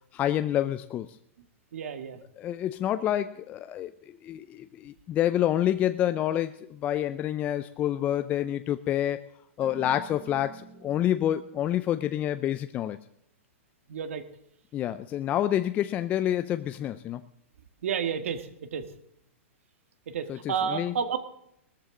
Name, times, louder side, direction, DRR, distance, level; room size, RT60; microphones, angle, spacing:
voice 1, 0.1-1.1 2.4-3.9 4.2-9.2 9.6-13.0 14.7-17.2 20.3-20.9, left 11 dB, 20° left, 11 dB, 0.4 m, -28 dB
voice 2, 1.7-2.2 13.9-14.2 17.8-18.8 20.1-21.2, right 7 dB, 75° right, 10 dB, 1.6 m, -31 dB
sound 1, 9.6-11.4, right 7 dB, 30° right, 2.7 m, -48 dB
18.5 x 13.5 x 3.8 m, 0.75 s
hypercardioid pair, 150°, 7 cm